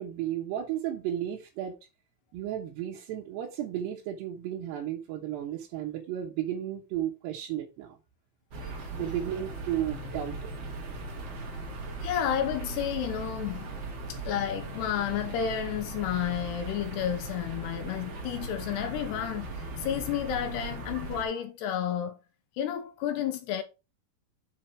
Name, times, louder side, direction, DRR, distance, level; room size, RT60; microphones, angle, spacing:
voice 1, 0.0-1.7 2.3-8.0 8.9-10.5, right 11 dB, 85° right, 3.3 m, -33 dB
sound 1, 8.5-21.2, right 2 dB, 45° right, 2.4 m, -38 dB
voice 2, 12.0-22.2 22.6-23.6, left 9 dB, 80° left, 3.0 m, -31 dB
7.4 x 5.9 x 4.5 m
omnidirectional pair, 4.7 m